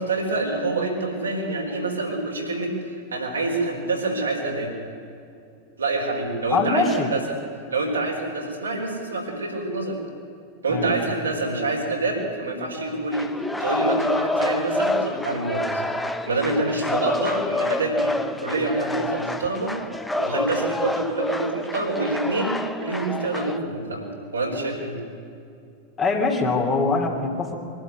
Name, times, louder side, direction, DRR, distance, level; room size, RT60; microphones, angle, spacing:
voice 1, 0.0-4.7 5.8-7.4 7.7-10.0 10.6-13.3 13.6-15.8 16.3-19.8 20.2-22.5 22.8-24.1 24.3-24.9, right 2 dB, 75° right, 0 dB, 4.4 m, -26 dB
voice 2, 6.5-7.1 10.7-10.9 26.0-27.6, left 3 dB, 20° left, 2 dB, 2.8 m, -23 dB
sound 1, 13.1-23.6, left 1 dB, 5° left, 1.1 m, -27 dB
23.0 x 12.5 x 9.6 m, 2.5 s
figure-of-eight pair, 90°, 0 cm